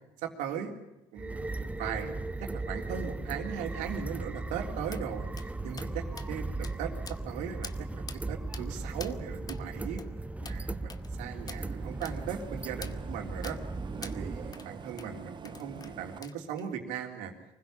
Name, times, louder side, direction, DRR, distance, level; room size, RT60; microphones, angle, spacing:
voice 1, 0.2-0.7 1.1-10.0 10.4-13.6 14.0-17.3, right 8 dB, 75° right, 4 dB, 3.4 m, -38 dB
sound 1, 1.2-14.5, right 2 dB, 10° right, 0.9 m, -37 dB
sound 2, 4.9-5.0 5.4-5.5 5.8-5.9 6.2-6.3 6.6-6.8 7.1-7.3 7.6-7.8 8.1-8.2 8.5-8.7 9.0-9.1 9.5-9.6 10.0-10.1 10.4-10.6 10.9-11.1 11.5-11.6 12.0-12.2 12.8-13.0 13.4-13.6 14.0-14.2 14.5-14.7 15.0-15.1 15.4-15.9 16.2-16.7, left 5 dB, 30° left, 1.4 m, -45 dB
sound 3, 11.2-16.2, right 6 dB, 35° right, 1.3 m, -44 dB
24.5 x 16.0 x 8.8 m, 0.94 s
supercardioid pair, 75°, 13 cm